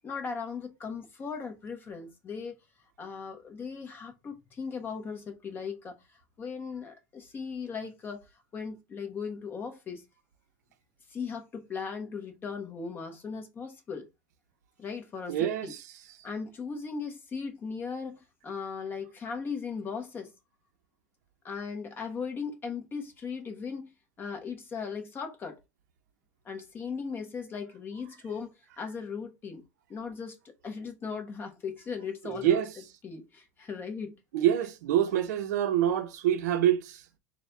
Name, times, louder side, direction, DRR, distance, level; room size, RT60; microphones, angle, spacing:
voice 1, 0.0-2.5 3.0-6.0 6.4-8.2 8.5-10.0 11.1-14.1 14.8-15.7 16.2-20.3 21.4-23.9 24.2-25.6 26.4-28.5 28.8-29.6 29.9-32.6 33.0-34.2, left 5 dB, 25° left, 1.0 m, -38 dB
voice 2, 15.3-15.8 32.2-32.7 34.3-37.0, right 11 dB, 80° right, 0.7 m, -26 dB
4.2 x 2.3 x 3.9 m
supercardioid pair, 135°, 9 cm